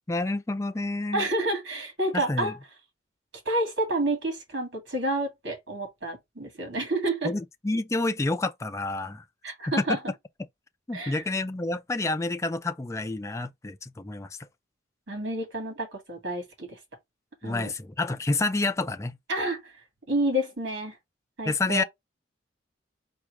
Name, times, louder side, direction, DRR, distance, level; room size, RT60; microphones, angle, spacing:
voice 1, 0.1-1.3 2.1-2.5 7.2-9.2 9.8-9.9 10.9-14.4 17.4-19.2 21.5-21.8, left 2 dB, 15° left, 0.4 m, -29 dB
voice 2, 1.1-2.6 3.5-7.3 9.4-10.0 10.9-11.2 15.1-16.8 17.4-17.7 19.3-19.7 20.1-21.0 21.4-21.8, right 1 dB, 65° right, 2.3 m, -29 dB
4.5 x 2.4 x 4.8 m
head